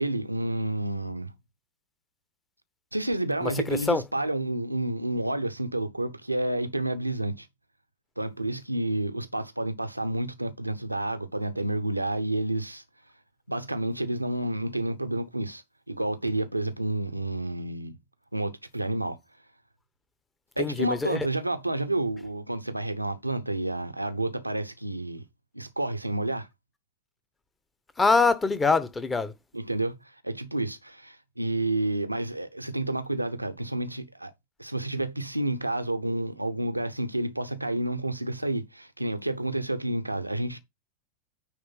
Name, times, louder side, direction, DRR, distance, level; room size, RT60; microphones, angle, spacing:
voice 1, 0.0-1.3 2.9-7.5 8.2-12.8 13.5-18.0 18.3-19.2 20.6-25.2 25.5-26.5 29.5-34.3 34.6-40.6, right 1 dB, 85° right, 0.7 m, -30 dB
voice 2, 3.4-4.0 20.6-21.3 28.0-29.3, left 4 dB, 15° left, 1.1 m, -24 dB
9.4 x 3.4 x 5.6 m
figure-of-eight pair, 90°, 0 cm